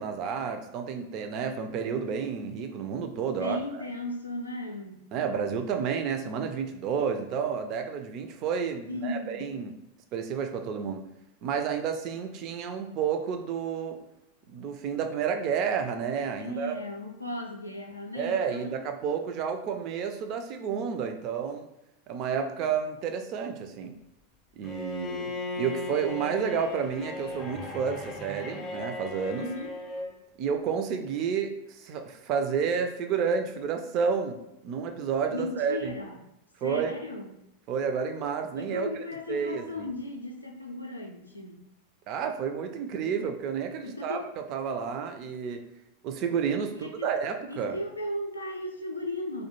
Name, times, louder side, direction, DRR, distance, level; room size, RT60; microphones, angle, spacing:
voice 1, 0.0-3.8 5.1-9.7 10.1-11.1 11.4-14.0 14.5-16.8 18.1-21.6 22.1-23.9 24.6-25.3 25.6-29.5 30.4-35.9 36.6-37.0 37.7-38.9 39.3-39.9 42.1-44.2 44.5-45.6 46.0-47.8, right 6 dB, 40° right, 6 dB, 0.3 m, -30 dB
voice 2, 3.4-5.1 8.9-9.5 16.4-18.7 29.4-29.7 35.3-36.2 36.6-37.3 38.6-41.6 43.8-44.2 46.7-47.1 47.5-49.5, left 1 dB, 85° left, 2 dB, 0.4 m, -36 dB
Bowed string instrument, 24.6-30.2, left 2 dB, 25° left, 0.5 m, -37 dB
2.2 x 2.1 x 2.9 m, 0.86 s
figure-of-eight pair, 90°, 0 cm